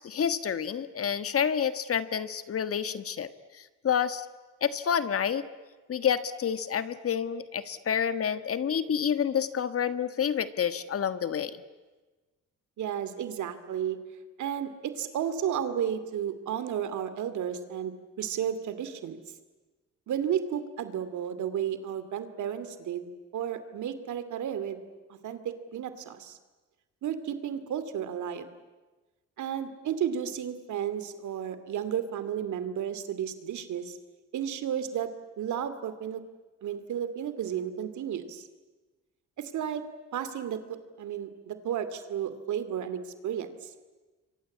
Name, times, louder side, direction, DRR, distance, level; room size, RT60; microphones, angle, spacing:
voice 1, 0.0-4.3 4.6-5.4 5.9-11.6, left 8 dB, 50° left, 12 dB, 1.5 m, -29 dB
voice 2, 12.8-14.0 14.4-19.2 20.1-23.1 23.3-24.8 25.2-25.4 25.7-26.4 27.0-28.5 29.4-34.0 34.3-35.1 35.4-36.2 36.6-38.5 39.4-39.8 40.1-40.6 41.0-43.7, right 9 dB, 75° right, 11 dB, 2.6 m, -33 dB
27.5 x 24.0 x 8.6 m, 1.2 s
cardioid pair, 90°, 30 cm